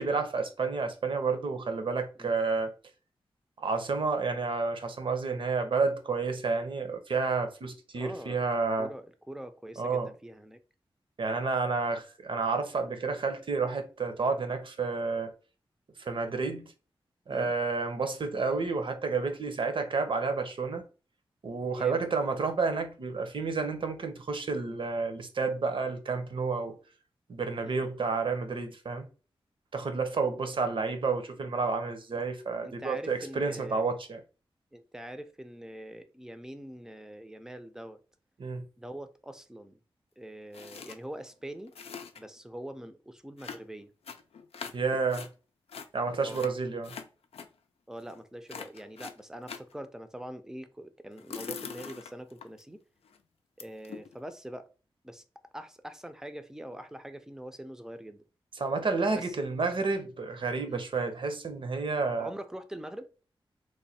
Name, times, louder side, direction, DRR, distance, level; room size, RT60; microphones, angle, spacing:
voice 1, 0.0-2.7 3.6-8.9 9.8-10.1 11.2-15.3 16.0-16.7 17.3-20.8 21.4-26.8 27.3-29.1 29.7-34.2 38.4-38.6 44.7-45.3 45.9-46.9 58.6-62.3, right 4 dB, 60° right, 0.7 m, -30 dB
voice 2, 8.0-8.5 8.8-10.6 17.3-17.5 21.7-22.0 27.6-27.9 32.1-32.2 32.6-33.9 34.7-38.0 38.8-39.8 40.2-41.7 42.2-43.9 46.2-46.4 47.9-52.8 53.6-54.7 55.0-55.2 55.5-58.2 59.1-59.4 60.7-60.9 62.2-63.1, right 1 dB, 5° right, 0.5 m, -43 dB
sound 1, 40.5-41.0 41.3-41.4 41.6-42.4 43.4-45.3 45.7-47.5 48.0-48.2 48.5-49.7 51.1-52.6 53.0-53.2 53.6-54.1, left 6 dB, 90° left, 0.4 m, -43 dB
3.1 x 2.2 x 4.1 m
wide cardioid pair, 90°, 10 cm